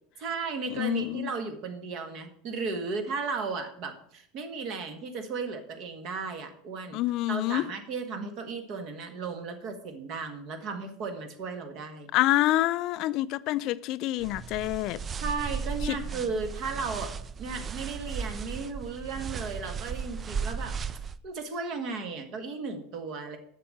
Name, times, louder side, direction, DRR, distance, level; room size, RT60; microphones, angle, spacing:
voice 1, 0.2-7.0 7.3-12.1 15.2-17.1 17.4-20.8 21.2-23.4, right 4 dB, 45° right, 1.7 m, -35 dB
voice 2, 0.7-1.3 6.9-7.6 12.1-15.0 15.8-16.0, left 16 dB, 50° left, 0.3 m, -27 dB
sound 1, 14.2-21.2, right 6 dB, 30° right, 0.4 m, -35 dB
7.6 x 6.8 x 7.5 m
figure-of-eight pair, 75°, 0 cm